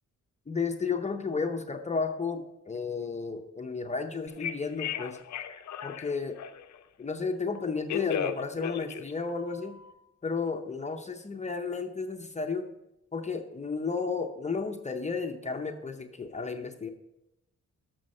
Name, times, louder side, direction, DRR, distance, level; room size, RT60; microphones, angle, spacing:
voice 1, 0.5-5.2 5.8-6.4 7.0-9.8 10.2-12.7 13.1-16.9, left 4 dB, 25° left, 5 dB, 0.7 m, -33 dB
Telephone, 4.3-6.8 7.6-9.9, left 8 dB, 70° left, 0.6 m, -35 dB
13.0 x 6.2 x 4.3 m, 0.88 s
cardioid pair, 120°, 29 cm